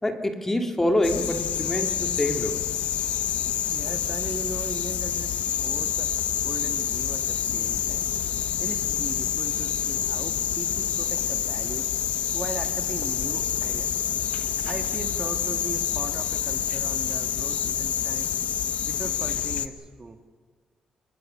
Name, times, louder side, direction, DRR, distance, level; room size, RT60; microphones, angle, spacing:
voice 1, 0.0-2.6, left 1 dB, 15° left, 4 dB, 2.7 m, -26 dB
sound 1, 1.0-19.7, left 10 dB, 90° left, 0.9 m, -27 dB
voice 2, 3.7-6.1 6.4-8.1 8.6-11.9 12.3-14.1 14.7-18.3 18.8-20.2, right 3 dB, 35° right, 5 dB, 2.2 m, -38 dB
26.0 x 22.0 x 6.8 m, 1.6 s
cardioid pair, 80°, 2 cm